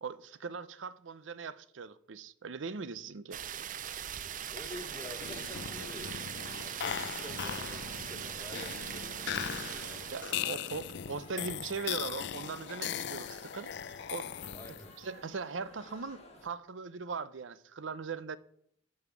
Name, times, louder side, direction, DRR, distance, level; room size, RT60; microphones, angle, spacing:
voice 1, 0.0-3.4 10.0-14.3 15.0-18.4, right 5 dB, 85° right, 0.6 m, -40 dB
Waterfall Small D, 3.3-10.3, right 9 dB, 45° right, 0.5 m, -40 dB
sound 1, 4.5-16.5, left 2 dB, 35° left, 1.7 m, -54 dB
voice 2, 4.5-6.2 6.8-10.2 14.5-14.9, left 1 dB, 10° left, 1.3 m, -48 dB
sound 2, 5.1-15.0, left 9 dB, 65° left, 0.5 m, -39 dB
9.5 x 5.6 x 7.0 m
head